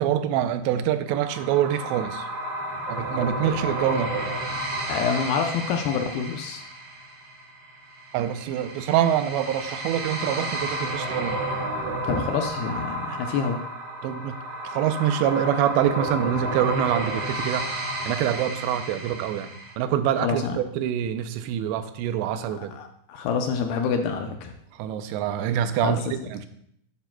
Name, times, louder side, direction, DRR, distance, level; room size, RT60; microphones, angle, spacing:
voice 1, 0.0-2.3 2.9-4.1 8.1-11.4 14.0-14.4 14.6-17.7 18.1-19.5 19.8-22.7 24.8-26.5, right 10 dB, 85° right, 10 dB, 2.8 m, -25 dB
sound 1, 1.1-19.7, right 1 dB, 65° right, 1.6 m, -32 dB
voice 2, 4.9-6.6 12.1-13.6 20.2-20.6 22.6-24.5 25.8-26.3, left 6 dB, 80° left, 5 dB, 2.4 m, -27 dB
11.5 x 9.7 x 2.2 m, 0.71 s
omnidirectional pair, 5.0 m